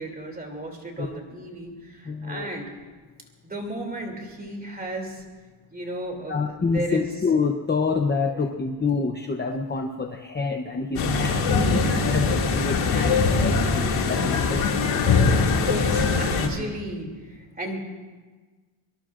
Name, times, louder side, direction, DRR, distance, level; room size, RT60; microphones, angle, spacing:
voice 1, 0.0-2.7 3.4-5.2 5.7-7.1 8.2-8.4 11.5-11.9 15.2-17.8, right 1 dB, 20° right, 1 dB, 2.8 m, -34 dB
voice 2, 2.1-2.5 6.3-14.6 16.5-16.6, left 4 dB, 20° left, 3 dB, 0.7 m, -27 dB
sound 1, 11.0-16.5, left 4 dB, 90° left, 2.4 m, -22 dB
25.0 x 23.0 x 2.5 m, 1.3 s
wide cardioid pair, 155°, 49 cm